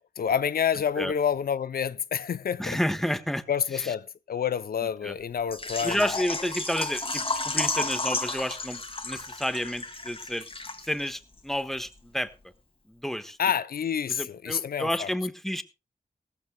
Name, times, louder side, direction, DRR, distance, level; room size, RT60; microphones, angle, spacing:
voice 1, 0.2-2.8 3.5-6.0 13.4-15.1, left 8 dB, 85° left, 0.5 m, -28 dB
voice 2, 2.6-3.4 3.7-3.9 5.0-5.1 5.8-10.5 10.8-12.3 12.9-13.4 14.1-15.6, equal, ahead, 1.3 m, -30 dB
Water / Liquid, 5.5-11.1 11.4-11.5 11.9-12.0, left 2 dB, 40° left, 2.3 m, -32 dB
17.5 x 15.0 x 2.2 m
cardioid pair, 60°, 15 cm